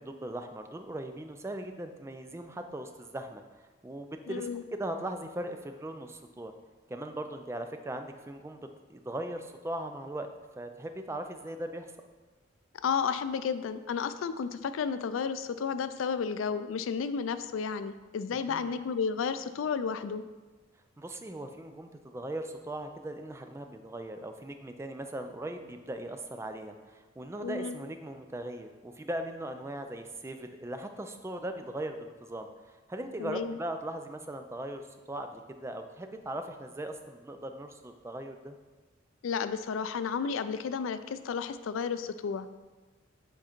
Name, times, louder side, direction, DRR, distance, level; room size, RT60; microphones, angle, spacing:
voice 1, 0.0-3.4 3.8-6.5 6.9-10.3 10.6-11.9 18.5-18.7 21.0-32.5 32.9-38.6, right 1 dB, 15° right, 6 dB, 0.3 m, -39 dB
voice 2, 4.3-4.6 12.7-20.2 27.4-27.8 33.2-33.6 39.2-42.6, left 6 dB, 90° left, 12 dB, 0.4 m, -32 dB
7.2 x 3.8 x 4.4 m, 1.3 s
head